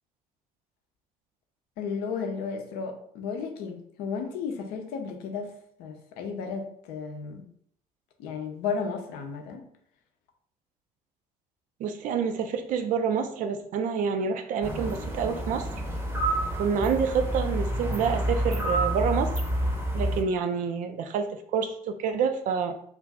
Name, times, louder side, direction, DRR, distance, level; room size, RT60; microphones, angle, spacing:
voice 1, 1.8-7.5 8.2-9.6, left 5 dB, 60° left, 4 dB, 0.6 m, -34 dB
voice 2, 11.8-15.7 16.6-19.3 19.9-22.7, right 6 dB, 45° right, 7 dB, 0.4 m, -28 dB
sound 1, 14.6-20.2, right 1 dB, 10° right, 0.7 m, -28 dB
2.5 x 2.4 x 3.2 m, 0.64 s
figure-of-eight pair, 55°, 18 cm